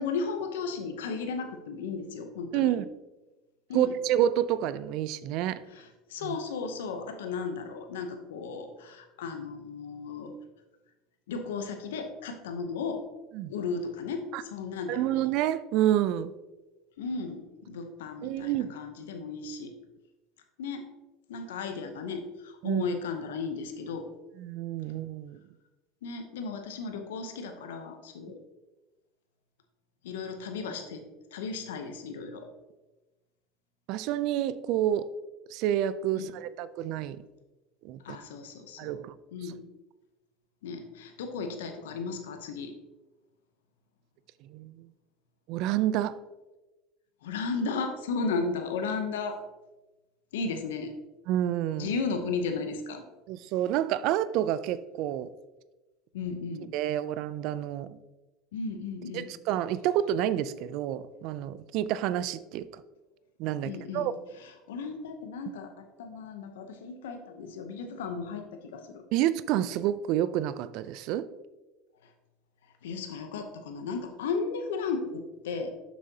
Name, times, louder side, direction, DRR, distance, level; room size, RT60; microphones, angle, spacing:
voice 1, 0.0-2.7 3.7-3.9 5.7-10.3 11.3-13.0 13.5-15.3 17.0-19.7 20.6-20.9 21.3-24.1 26.0-28.4 30.0-31.0 31.3-32.5 36.1-36.3 38.0-39.0 39.3-39.6 40.6-42.7 47.2-49.4 50.3-51.0 51.8-53.0 56.1-56.7 58.5-59.3 63.6-64.1 64.4-69.0 72.0-72.1 72.8-75.7, left 4 dB, 85° left, 6 dB, 0.8 m, -35 dB
voice 2, 2.5-2.9 3.7-5.6 6.2-6.4 13.3-13.5 14.3-14.4 14.9-16.3 18.2-18.7 22.6-22.9 24.4-25.4 33.9-35.1 35.5-37.2 37.8-38.0 38.8-39.1 44.4-44.9 45.5-46.2 51.3-51.9 53.3-55.3 56.7-57.9 59.3-62.7 63.4-64.1 69.1-71.3, right 12 dB, 65° right, 15 dB, 0.4 m, -28 dB
7.3 x 6.2 x 2.8 m, 1.1 s
supercardioid pair, 95°, 0 cm